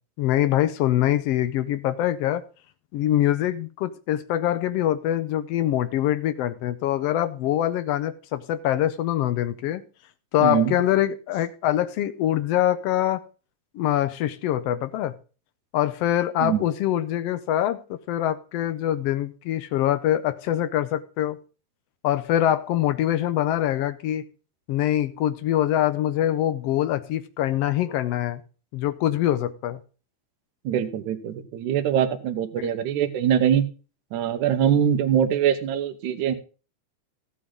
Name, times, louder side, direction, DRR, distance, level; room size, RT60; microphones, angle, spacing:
voice 1, 0.2-2.4 2.9-9.8 10.3-13.2 13.7-15.1 15.7-17.8 18.1-21.4 22.0-24.2 24.7-28.4 28.7-29.8, left 12 dB, 80° left, 12 dB, 1.4 m, -24 dB
voice 2, 10.4-10.7 16.4-16.6 30.7-33.6 34.1-36.4, right 9 dB, 75° right, 6 dB, 2.4 m, -23 dB
14.0 x 8.5 x 3.8 m, 0.34 s
omnidirectional pair, 3.5 m